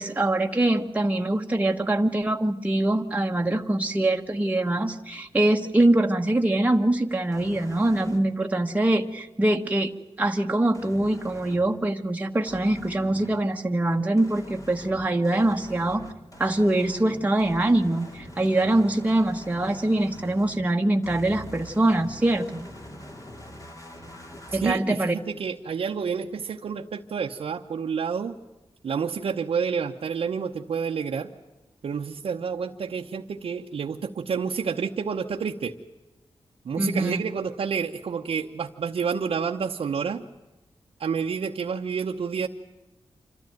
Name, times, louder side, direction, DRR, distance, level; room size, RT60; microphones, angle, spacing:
voice 1, 0.0-9.9 10.2-16.1 16.4-22.7 24.5-25.1 36.8-37.2, right 1 dB, 15° right, 2 dB, 1.3 m, -23 dB
sound 1, 7.3-8.2 10.7-11.6 12.5-13.3 14.2-20.6 21.0-24.7, equal, 35° left, 3.2 m, -44 dB
voice 2, 24.5-28.4 28.8-31.3 31.8-35.7 36.6-40.2 41.0-42.5, right 6 dB, 75° right, 1 dB, 0.9 m, -29 dB
27.0 x 13.5 x 9.1 m, 1.1 s
wide cardioid pair, 115°, 10 cm